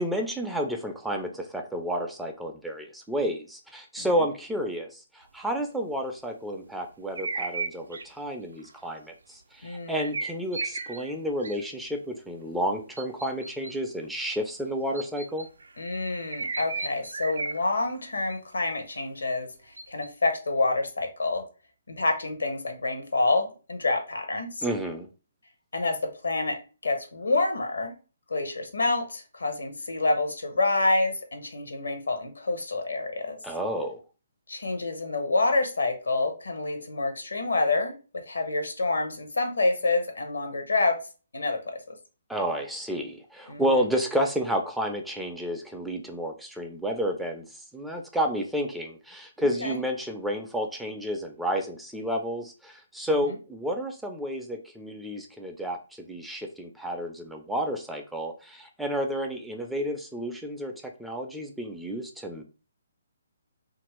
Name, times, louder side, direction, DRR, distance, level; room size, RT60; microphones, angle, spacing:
voice 1, 0.0-15.5 24.6-25.1 33.4-34.0 42.3-60.7 61.0-62.4, equal, ahead, 2 dB, 0.4 m, -31 dB
voice 2, 4.0-4.3 9.6-10.1 15.8-19.5 19.9-21.4 21.9-24.6 25.7-26.0 26.2-27.9 28.3-33.4 34.5-37.9 38.3-40.9 41.3-42.0 43.5-43.8 49.6-49.8, left 3 dB, 75° left, 4 dB, 0.8 m, -27 dB
sound 1, 7.2-8.1 8.6-8.8 9.9-11.1 11.4-11.7 13.0-13.7 14.9-15.7 16.3-18.0 18.3-18.4 19.8-20.1, right 4 dB, 70° right, 0.4 m, -34 dB
2.8 x 2.5 x 3.1 m, 0.34 s
figure-of-eight pair, 135°, 0 cm